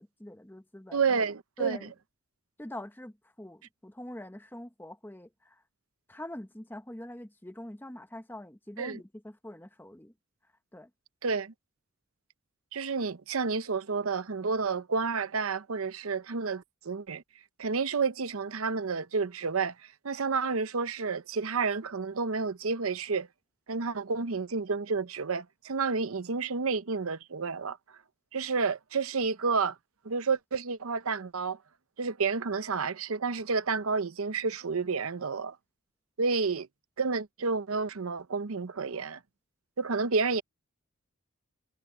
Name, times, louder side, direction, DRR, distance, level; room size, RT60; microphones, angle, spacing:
voice 1, 0.0-1.0 1.6-1.9 2.6-5.6 6.1-10.1 10.7-10.9, left 1 dB, 10° left, 0.9 m, -44 dB
voice 2, 0.9-1.9 8.8-9.0 11.2-11.5 12.7-17.2 17.6-19.7 20.0-23.3 23.7-27.8 28.3-29.8 30.0-31.6 32.0-35.6 36.2-36.7 37.0-39.2 39.8-40.4, right 4 dB, 85° right, 0.8 m, -30 dB
head